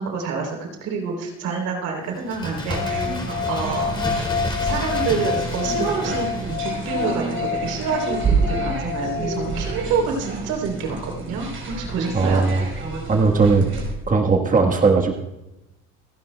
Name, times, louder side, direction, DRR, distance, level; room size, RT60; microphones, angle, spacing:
voice 1, 0.0-3.1 3.5-3.9 4.6-11.5 11.7-12.4, right 5 dB, 85° right, 2 dB, 3.4 m, -27 dB
Bird, 2.1-7.7 8.0-8.1, left 2 dB, 15° left, 2.8 m, -32 dB
sound 1, 2.7-9.8, left 7 dB, 75° left, 1.3 m, -29 dB
sound 2, 2.7-13.9, right 4 dB, 45° right, 4.9 m, -29 dB
voice 2, 12.1-12.7 13.1-13.7 14.1-15.2, right 4 dB, 25° right, 2 dB, 1.3 m, -18 dB
28.0 x 10.5 x 2.2 m, 0.94 s
cardioid pair, 100°, 30 cm